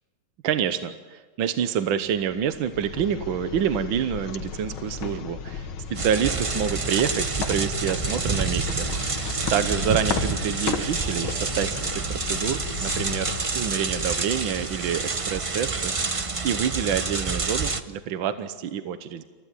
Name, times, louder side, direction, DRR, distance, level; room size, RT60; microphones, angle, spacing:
voice 1, 0.4-19.2, right 8 dB, 75° right, 10 dB, 1.7 m, -27 dB
sound 1, 2.1-14.2, left 7 dB, 85° left, 2.0 m, -35 dB
sound 2, 5.9-17.8, right 4 dB, 55° right, 0.3 m, -28 dB
28.0 x 15.5 x 9.3 m, 1.4 s
omnidirectional pair, 2.2 m